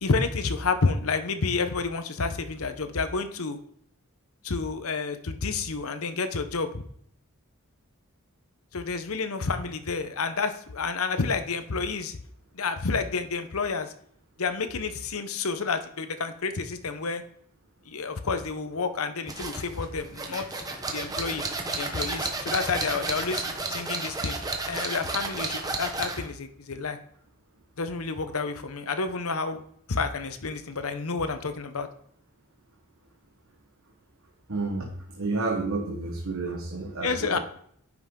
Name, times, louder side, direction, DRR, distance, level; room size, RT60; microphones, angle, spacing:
voice 1, 0.0-3.6 4.4-6.8 8.7-12.2 12.5-13.9 14.4-17.2 17.9-20.5 20.9-21.4 21.8-24.4 24.7-27.0 27.8-29.6 29.9-31.9 37.0-37.4, left 4 dB, 75° left, 9 dB, 0.8 m, -29 dB
sound 1, 19.3-26.3, right 3 dB, 15° right, 0.9 m, -32 dB
voice 2, 34.5-37.4, right 3 dB, 65° right, 0 dB, 1.2 m, -30 dB
10.0 x 5.9 x 3.7 m, 0.65 s
head